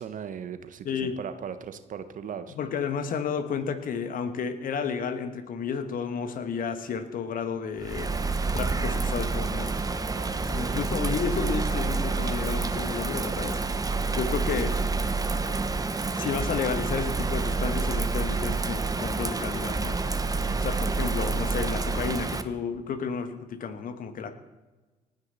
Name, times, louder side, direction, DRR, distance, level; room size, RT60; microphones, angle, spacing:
voice 1, 0.0-2.5 10.1-10.8 20.4-20.7, right 8 dB, 45° right, 10 dB, 1.3 m, -39 dB
voice 2, 0.9-1.2 2.6-8.1 8.5-9.8 10.5-13.6 14.2-14.7 15.4-15.6 16.2-20.0 20.6-24.4, left 6 dB, 45° left, 9 dB, 1.7 m, -32 dB
Bird vocalization bird call bird song / Rain, 7.8-22.4, right 3 dB, 20° right, 1.2 m, -28 dB
29.0 x 9.6 x 4.2 m, 1.2 s
figure-of-eight pair, 50°, 20 cm